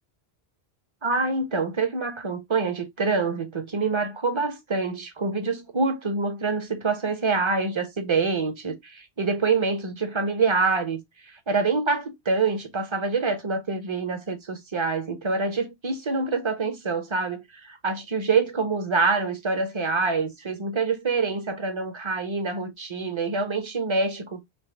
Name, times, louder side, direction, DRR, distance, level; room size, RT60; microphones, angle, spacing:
voice 1, 1.0-11.0 11.5-24.4, right 4 dB, 30° right, 0.6 m, -26 dB
5.1 x 2.1 x 3.3 m
omnidirectional pair, 1.1 m